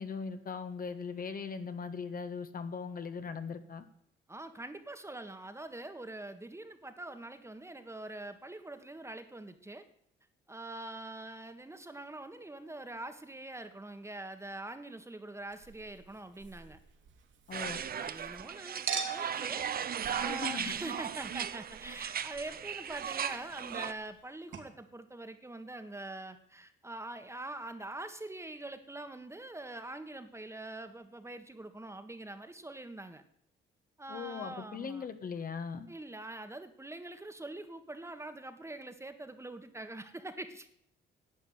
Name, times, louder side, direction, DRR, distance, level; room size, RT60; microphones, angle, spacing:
voice 1, 0.0-3.8 17.5-17.8 20.3-20.8 34.1-35.9, left 5 dB, 45° left, 8 dB, 1.5 m, -39 dB
voice 2, 4.3-9.9 10.5-16.8 17.9-19.7 20.1-33.2 34.0-35.0 35.9-40.7, right 2 dB, 15° right, 9 dB, 1.5 m, -44 dB
Chink clink, 15.5-18.4 18.9-24.2 24.5-24.6, right 6 dB, 70° right, 2.7 m, -44 dB
sound 1, 17.5-23.9, right 8 dB, 50° right, 0.8 m, -37 dB
11.5 x 8.4 x 9.6 m, 0.68 s
cardioid pair, 90°, 20 cm